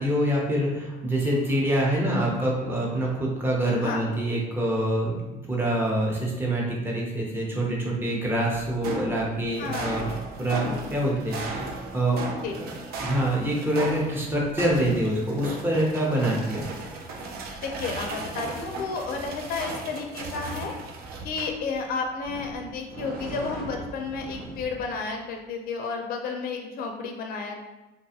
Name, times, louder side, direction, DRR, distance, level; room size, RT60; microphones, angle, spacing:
voice 1, 0.0-5.2 5.5-10.1 10.4-12.2 12.6-12.7 13.0-16.6, right 1 dB, 15° right, -3 dB, 0.7 m, -25 dB
sound 1, 8.5-21.9 22.2-25.0, right 3 dB, 65° right, 0.5 m, -37 dB
voice 2, 9.6-10.1 12.4-12.6 17.6-20.7 21.2-27.6, left 4 dB, 60° left, 3 dB, 0.4 m, -32 dB
2.5 x 2.3 x 2.7 m, 1.1 s
cardioid pair, 110°, 17 cm